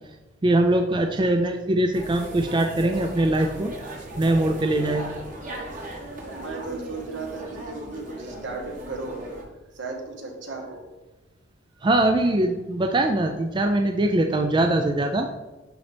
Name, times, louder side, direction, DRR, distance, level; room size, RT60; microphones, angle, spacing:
voice 1, 0.4-3.7 4.2-5.2 11.8-15.3, right 1 dB, 25° right, 4 dB, 0.4 m, -22 dB
sound 1, 1.9-9.4, right 1 dB, 45° right, 1.5 m, -37 dB
voice 2, 6.2-9.2 9.7-10.8, right 3 dB, 70° right, 2 dB, 1.4 m, -35 dB
11.0 x 4.1 x 3.4 m, 1.2 s
head